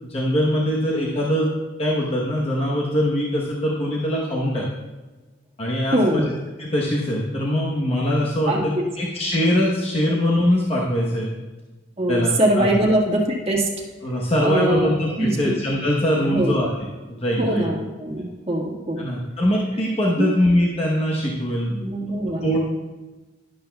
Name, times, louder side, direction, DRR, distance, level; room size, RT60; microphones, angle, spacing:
voice 1, 0.0-1.5 1.8-4.6 5.6-6.2 6.6-11.3 12.1-12.7 14.0-17.7 19.0-21.8 22.4-22.6, equal, 30° left, -4 dB, 1.0 m, -22 dB
voice 2, 5.9-6.3 8.5-8.9 12.0-13.7 14.4-14.9 15.2-15.5 16.2-16.6 17.4-19.0 20.2-20.3 21.7-22.5, right 1 dB, 30° right, -1 dB, 1.6 m, -22 dB
12.0 x 11.5 x 2.3 m, 1.2 s
head